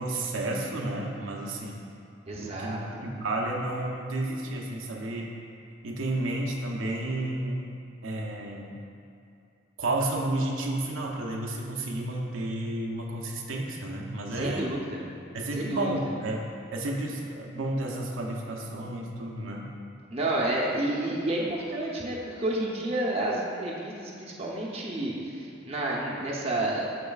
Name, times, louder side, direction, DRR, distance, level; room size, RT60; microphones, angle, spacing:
voice 1, 0.0-1.8 2.4-5.4 5.8-7.7 8.0-8.8 9.8-14.7 15.3-16.5 16.7-19.7, right 2 dB, 85° right, -1 dB, 0.7 m, -31 dB
voice 2, 2.3-3.1 14.3-15.0 15.5-16.0 20.1-26.9, right 1 dB, 30° right, -4 dB, 0.8 m, -30 dB
12.5 x 4.3 x 2.4 m, 2.6 s
head